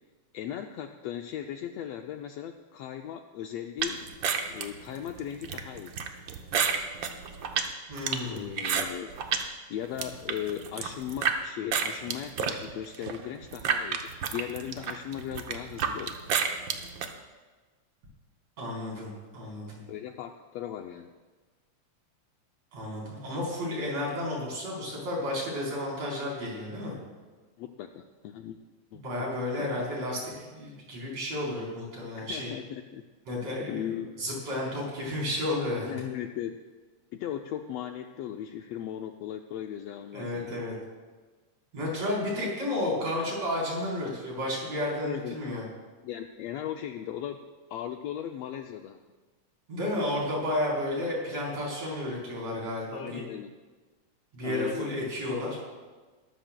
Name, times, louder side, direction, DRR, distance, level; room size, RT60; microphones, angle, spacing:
voice 1, 0.3-4.0 4.5-6.1 8.2-9.1 9.7-16.2 19.9-21.1 27.6-28.6 28.9-29.0 29.6-29.7 32.2-33.0 33.7-34.2 35.8-36.6 37.1-40.6 45.0-45.4 46.0-47.4 47.7-49.0 52.9-53.5 54.4-54.9, left 10 dB, 80° left, 5 dB, 1.5 m, -37 dB
sound 1, 3.8-9.5 9.8-11.4 11.7-17.1, right 7 dB, 90° right, 1.0 m, -30 dB
voice 2, 7.9-8.5 18.6-19.8 22.7-27.0 28.9-32.5 33.3-33.9 34.2-35.9 40.1-40.8 41.7-45.6 49.7-53.2 54.3-55.6, left 1 dB, 60° right, -4 dB, 5.0 m, -32 dB
21.0 x 13.0 x 2.2 m, 1.3 s
omnidirectional pair, 3.3 m